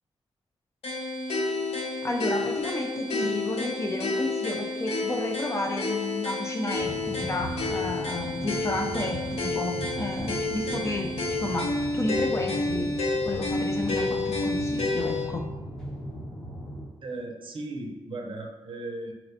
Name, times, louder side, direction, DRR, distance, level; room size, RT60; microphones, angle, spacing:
sound 1, 0.8-15.3, left 2 dB, 85° left, 0.6 m, -30 dB
voice 1, 2.0-13.0 13.2-15.5, left 2 dB, 30° left, 2 dB, 0.4 m, -32 dB
sound 2, 6.7-16.8, equal, 55° left, 1.1 m, -38 dB
sound 3, 8.5-16.5, right 1 dB, 5° left, 0.8 m, -47 dB
voice 2, 17.0-19.1, right 2 dB, 55° right, 2 dB, 0.5 m, -36 dB
4.0 x 2.1 x 2.7 m, 1.2 s
cardioid pair, 75°, 10 cm